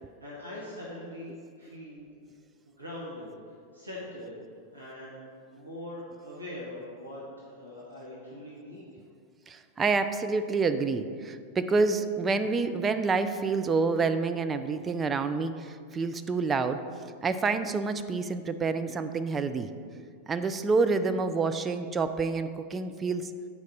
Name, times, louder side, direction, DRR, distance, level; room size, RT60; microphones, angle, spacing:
voice 1, 0.2-2.1 2.7-3.3 3.7-4.3 4.7-8.9, left 1 dB, 85° right, -6 dB, 1.1 m, -42 dB
voice 2, 9.5-16.8 17.2-19.7 20.3-23.3, right 4 dB, 20° right, 9 dB, 0.4 m, -28 dB
8.1 x 5.2 x 4.0 m, 2.1 s
figure-of-eight pair, 90°, 0 cm